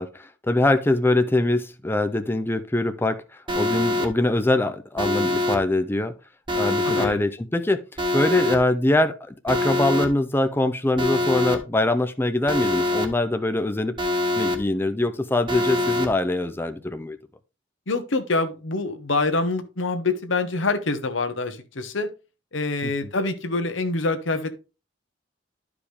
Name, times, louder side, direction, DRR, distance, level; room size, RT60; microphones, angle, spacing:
voice 1, 0.0-6.1 6.5-7.8 8.1-14.0 14.3-17.2 22.8-22.9, left 2 dB, 10° left, 0.5 m, -23 dB
Alarm, 3.5-4.1 5.0-5.6 6.5-7.1 8.0-8.6 9.5-10.1 11.0-11.6 12.5-13.1 14.0-14.6 15.5-16.1, left 2 dB, 25° right, 1.2 m, -24 dB
voice 2, 6.8-7.2 17.9-22.1 22.5-24.6, left 3 dB, 80° left, 1.1 m, -25 dB
11.5 x 4.9 x 3.4 m
head